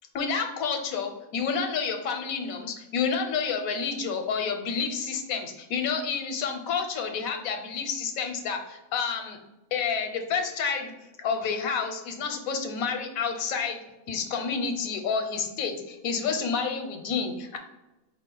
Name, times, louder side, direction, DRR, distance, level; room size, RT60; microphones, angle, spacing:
voice 1, 0.1-9.4 9.7-10.9 11.2-13.8 14.1-17.6, left 5 dB, 85° left, 5 dB, 1.1 m, -29 dB
5.2 x 2.0 x 3.8 m, 1.0 s
omnidirectional pair, 1.4 m